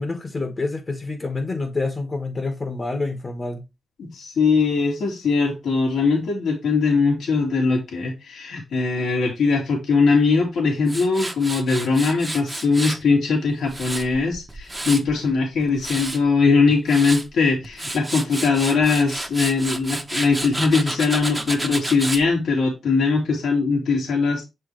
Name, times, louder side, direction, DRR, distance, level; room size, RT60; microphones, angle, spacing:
voice 1, 0.0-3.6, left 3 dB, 40° left, 1.5 m, -27 dB
voice 2, 4.0-24.4, left 4 dB, 85° left, 2.7 m, -21 dB
Tools, 10.9-13.0 13.5-15.2 15.6-16.2 16.7-17.3 17.6-22.2, right 2 dB, 15° right, 1.1 m, -30 dB
7.0 x 4.8 x 3.2 m
cardioid pair, 85°, 0 cm